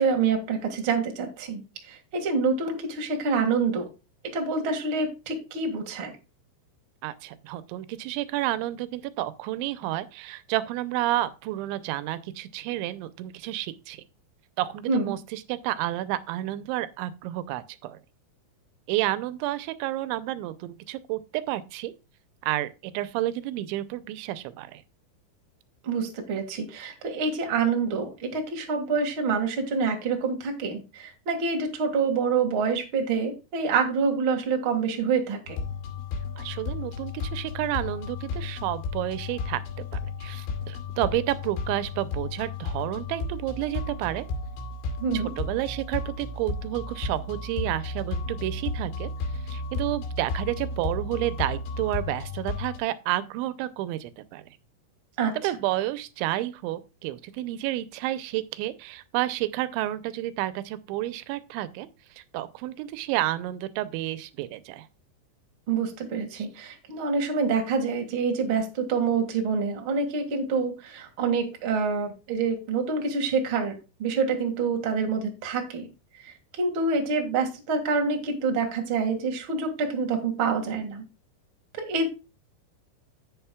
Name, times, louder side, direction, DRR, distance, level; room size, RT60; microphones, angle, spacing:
voice 1, 0.0-1.6 1.9-3.8 4.3-6.1 14.9-15.1 25.8-35.6 45.0-45.3 55.2-55.3 65.7-75.9 76.2-81.0 81.8-82.1, right 5 dB, 50° right, 1.6 m, -27 dB
voice 2, 7.0-14.0 14.6-18.0 18.9-21.9 22.4-24.8 36.4-39.6 40.2-44.3 45.1-54.4 55.3-61.9 62.2-64.9 66.3-66.5, right 15 dB, 90° right, 3.0 m, -30 dB
sound 1, 35.5-52.8, left 3 dB, 90° left, 4.7 m, -33 dB
11.0 x 8.5 x 2.3 m
omnidirectional pair, 5.2 m